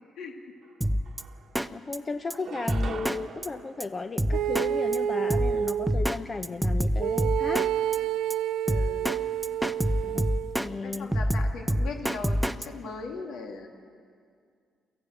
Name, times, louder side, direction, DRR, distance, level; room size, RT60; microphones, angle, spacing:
sound 1, 0.6-0.7 1.0-1.8 2.3-4.9, right 6 dB, 60° right, 1.1 m, -43 dB
Drum kit, 0.8-1.2 1.6-1.7 1.9-2.0 2.3-2.4 2.7-3.2 3.4-3.5 3.8-3.9 4.2-4.7 4.9-5.0 5.3-6.2 6.4-7.7 7.9-8.0 8.3-8.4 8.7-9.2 9.4-10.7 10.9-12.7, equal, 5° right, 0.6 m, -26 dB
voice 1, 1.7-7.7 10.0-11.1, left 3 dB, 30° left, 8 dB, 0.7 m, -35 dB
sound 2, 4.3-6.0 7.0-10.6, right 10 dB, 80° right, 0.5 m, -29 dB
voice 2, 8.7-9.1 10.8-13.7, left 4 dB, 80° left, 2 dB, 2.3 m, -39 dB
23.5 x 15.0 x 8.0 m, 2.2 s
cardioid pair, 90°, 0 cm